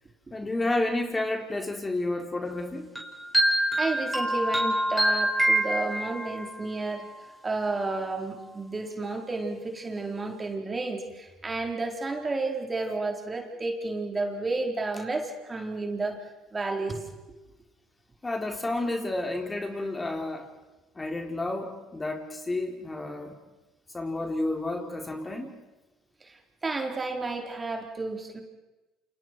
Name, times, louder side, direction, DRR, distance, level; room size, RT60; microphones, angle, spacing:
voice 1, 0.3-2.9 18.2-20.5 21.0-23.3 23.9-25.5, left 2 dB, 20° left, 3 dB, 3.7 m, -31 dB
sound 1, 3.0-6.5, right 1 dB, 5° right, 6.4 m, -25 dB
voice 2, 3.8-16.2 16.5-17.0 26.2-28.4, right 3 dB, 25° right, 2 dB, 4.3 m, -32 dB
29.0 x 29.0 x 4.7 m, 1.1 s
hypercardioid pair, 65°, 0 cm